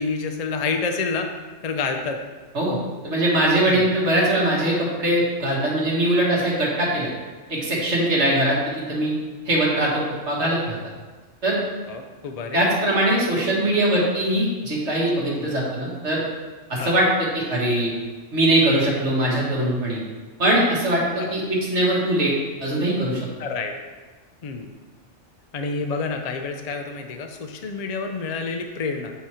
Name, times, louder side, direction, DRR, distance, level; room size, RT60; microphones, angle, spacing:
voice 1, 0.0-1.3 1.6-2.2 3.7-3.9 11.9-12.7 15.4-15.5 16.8-16.9 21.2-21.4 23.4-23.7 24.4-24.7 25.5-29.1, left 4 dB, 55° left, 5 dB, 0.4 m, -28 dB
voice 2, 3.0-7.1 7.5-9.2 9.5-10.8 11.4-11.6 12.5-16.2 16.7-17.1 17.3-17.9 18.3-20.0 20.4-22.3 22.6-23.3, right 1 dB, 70° right, -5 dB, 1.9 m, -21 dB
8.5 x 2.9 x 4.8 m, 1.3 s
omnidirectional pair, 1.2 m